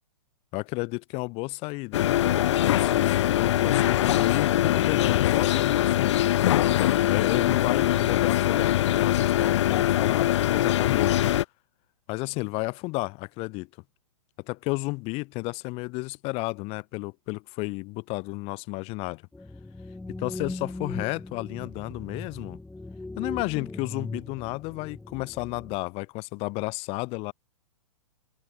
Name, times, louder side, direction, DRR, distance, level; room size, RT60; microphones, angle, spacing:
voice 1, 0.5-6.2 7.0-11.3 12.1-13.7 14.4-19.2 20.1-22.6 23.1-27.3, left 25 dB, 30° left, 2.3 m, -32 dB
sound 1, 1.9-11.4, left 13 dB, 50° left, 1.9 m, -22 dB
fish dreams, 19.3-25.8, left 2 dB, 5° left, 3.5 m, -39 dB
figure-of-eight pair, 115°, 19 cm